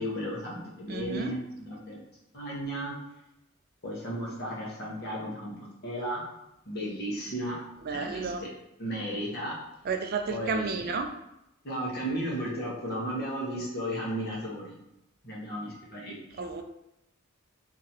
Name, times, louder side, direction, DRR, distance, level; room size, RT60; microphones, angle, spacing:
voice 1, 0.0-2.0 2.3-2.9 3.8-6.2 6.6-7.6 7.9-8.5 8.8-9.5 10.3-10.9 11.6-14.7 15.2-16.4, equal, 45° left, -5 dB, 1.2 m, -34 dB
voice 2, 0.9-1.3 7.9-8.4 9.9-11.1 16.4-16.6, right 4 dB, 45° right, 5 dB, 0.3 m, -31 dB
3.9 x 3.0 x 2.9 m, 0.85 s
head